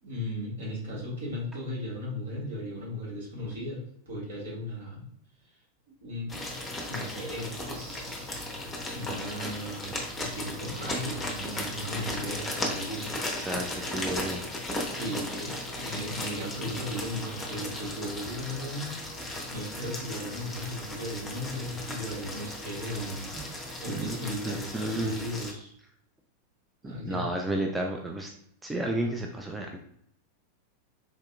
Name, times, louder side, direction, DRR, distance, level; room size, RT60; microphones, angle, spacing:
voice 1, 0.0-5.0 6.0-6.4 6.7-8.3 8.9-13.2 14.9-19.0 19.5-23.3 23.8-25.7 26.8-27.2, equal, 60° right, -4 dB, 1.5 m, -36 dB
sound 1, 6.3-25.5, left 1 dB, 10° left, 0.8 m, -36 dB
voice 2, 13.4-14.4 23.4-23.5 23.9-24.2 24.4-25.2 26.8-28.3 28.6-29.8, right 1 dB, 10° right, 2 dB, 0.4 m, -32 dB
3.9 x 2.8 x 2.2 m, 0.66 s
figure-of-eight pair, 90°, 0 cm